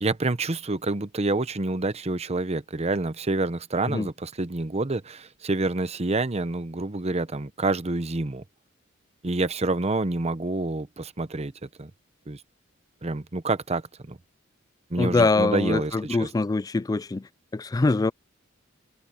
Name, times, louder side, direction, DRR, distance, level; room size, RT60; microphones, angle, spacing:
voice 1, 0.0-8.4 9.2-11.5 11.8-11.9 12.3-12.4 13.0-14.2 14.9-16.3, right 2 dB, 35° right, 0.9 m, -27 dB
voice 2, 15.0-17.2 17.5-18.1, left 3 dB, 20° left, 0.3 m, -23 dB
head